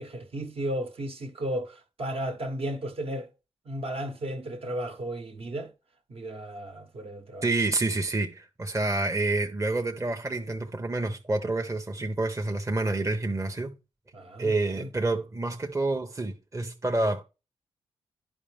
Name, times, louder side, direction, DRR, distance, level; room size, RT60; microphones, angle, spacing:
voice 1, 0.0-3.3 3.6-5.7 6.1-7.5 14.1-14.9, right 1 dB, 60° right, 1.4 m, -34 dB
voice 2, 7.4-13.8 14.4-17.2, right 2 dB, 25° right, 1.0 m, -28 dB
10.0 x 5.0 x 3.5 m
supercardioid pair, 45°, 11 cm